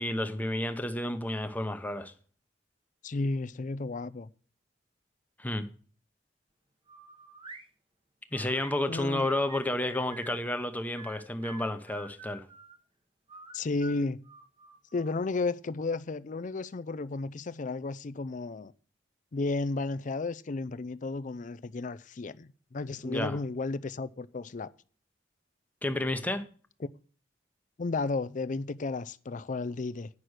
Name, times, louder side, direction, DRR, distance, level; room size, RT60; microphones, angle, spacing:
voice 1, 0.0-2.1 5.4-5.7 8.3-12.4 23.0-23.4 25.8-26.4, left 1 dB, 10° left, 0.8 m, -31 dB
voice 2, 3.0-4.3 8.9-9.3 13.5-14.2 14.9-18.7 19.3-24.7 27.8-30.1, left 3 dB, 45° left, 0.5 m, -33 dB
sound 1, 6.9-7.7 8.3-10.4 11.0-12.8 13.3-15.1, right 2 dB, 30° right, 0.9 m, -48 dB
9.7 x 6.0 x 6.4 m
head